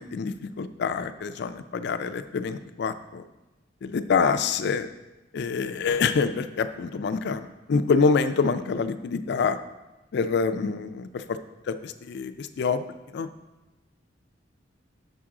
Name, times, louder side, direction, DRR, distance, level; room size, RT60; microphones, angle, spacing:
voice 1, 0.0-3.2 3.8-4.9 5.3-9.6 10.1-11.4 11.7-12.8 13.1-13.3, left 5 dB, 60° left, 11 dB, 0.4 m, -26 dB
6.9 x 5.9 x 3.7 m, 1.1 s
head